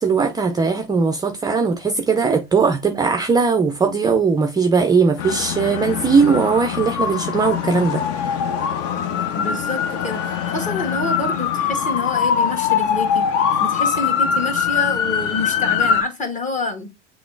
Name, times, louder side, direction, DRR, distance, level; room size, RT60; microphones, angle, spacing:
voice 1, 0.0-8.3, right 5 dB, 10° right, 0.4 m, -19 dB
sound 1, 5.2-16.0, left 7 dB, 45° left, 0.7 m, -22 dB
voice 2, 9.3-13.3 13.6-16.9, left 2 dB, 20° left, 1.3 m, -27 dB
6.8 x 3.1 x 2.5 m
hypercardioid pair, 100°, 34 cm